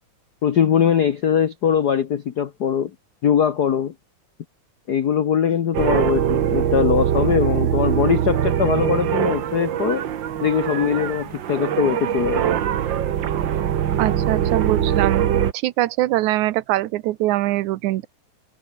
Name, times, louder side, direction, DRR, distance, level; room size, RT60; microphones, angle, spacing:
voice 1, 0.4-2.9 3.2-3.9 4.9-10.0 10.4-12.6, left 8 dB, 80° left, 0.8 m, -21 dB
sound 1, 5.7-15.5, right 10 dB, 55° right, 1.4 m, -22 dB
voice 2, 14.0-15.3 15.5-18.1, right 16 dB, 85° right, 2.3 m, -22 dB
omnidirectional pair, 3.3 m